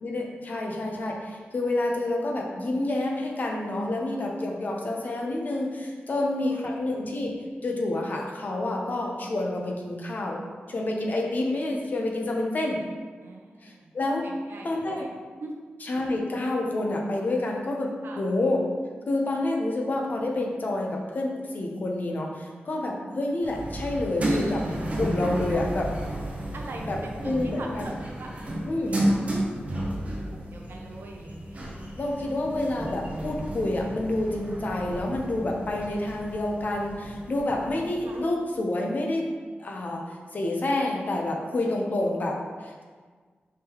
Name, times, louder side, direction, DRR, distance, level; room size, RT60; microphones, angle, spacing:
voice 1, 0.0-7.3 7.6-10.4 10.7-12.8 13.6-14.2 14.6-15.1 15.8-18.6 19.1-24.6 25.0-25.9 26.9-27.0 27.2-27.8 28.7-29.1 32.0-39.3 39.6-42.8, left 2 dB, 45° left, 0 dB, 0.6 m, -28 dB
voice 2, 6.1-6.6 13.2-14.0 14.2-15.1 15.4-15.6 18.0-18.3 26.5-28.3 28.6-29.4 29.7-31.6 31.9-32.2 37.5-38.2, right 2 dB, 70° right, 0 dB, 0.6 m, -43 dB
sound 1, 23.4-38.2, right 1 dB, 35° right, 0.8 m, -32 dB
5.1 x 3.6 x 2.9 m, 1.5 s
wide cardioid pair, 175°, 4 cm